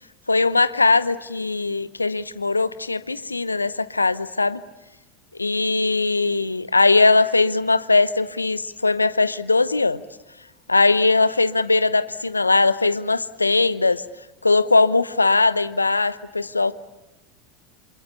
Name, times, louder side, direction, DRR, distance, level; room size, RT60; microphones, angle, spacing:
voice 1, 0.3-4.6 5.4-10.0 10.7-14.0 14.4-16.7, left 3 dB, 85° left, 16 dB, 0.9 m, -20 dB
27.5 x 27.0 x 7.1 m, 1.0 s
figure-of-eight pair, 80°, 0 cm